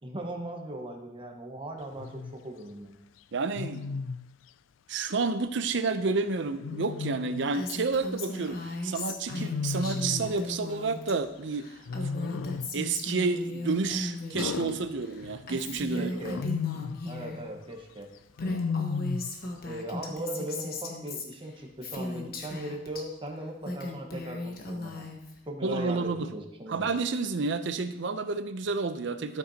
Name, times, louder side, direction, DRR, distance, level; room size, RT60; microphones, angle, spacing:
voice 1, 0.0-3.0 16.0-16.4 17.0-18.1 18.4-18.8 19.6-25.1 25.5-26.9, right 1 dB, 30° right, 2 dB, 1.2 m, -38 dB
Wild animals, 2.0-2.3 3.6-4.3 6.6-7.5 9.3-10.4 11.9-12.8 14.3-15.5 16.2-17.1 18.4-19.4, left 5 dB, 80° left, 0.3 m, -34 dB
voice 2, 3.3-3.9 4.9-11.7 12.7-16.1 25.6-26.3 26.7-29.4, right 4 dB, 70° right, 11 dB, 0.6 m, -30 dB
Female speech woman speaking, 7.5-11.1 11.4-14.7 15.0-17.4 18.0-18.1 18.3-23.0 23.5-25.4, left 2 dB, 50° left, 1.2 m, -37 dB
13.0 x 7.7 x 2.9 m, 0.88 s
head